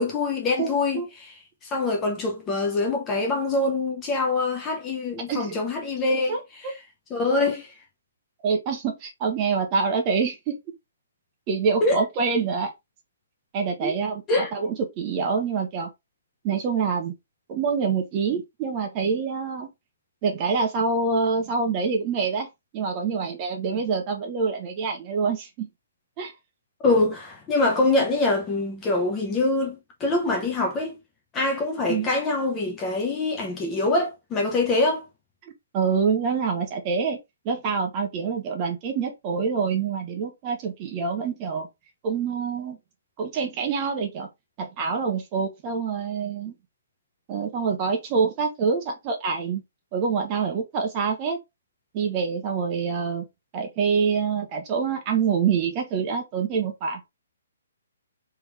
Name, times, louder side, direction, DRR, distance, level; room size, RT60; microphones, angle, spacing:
voice 1, 0.0-1.3 1.6-6.7 7.1-7.8 11.8-12.0 13.8-14.0 14.3-14.5 26.8-31.0 31.3-35.1, left 2 dB, 15° left, 0.7 m, -24 dB
voice 2, 0.6-1.1 5.3-5.6 6.3-6.4 8.4-10.6 11.5-12.7 13.5-15.9 16.4-17.1 17.5-19.7 20.2-22.5 22.7-25.7 26.2-26.3 31.9-32.1 35.7-37.2 37.4-41.7 42.0-42.8 43.2-44.3 44.6-46.5 47.3-49.6 49.9-51.4 51.9-53.2 53.5-57.0, right 5 dB, 20° right, 0.9 m, -26 dB
3.5 x 3.1 x 3.3 m
hypercardioid pair, 170°, 0 cm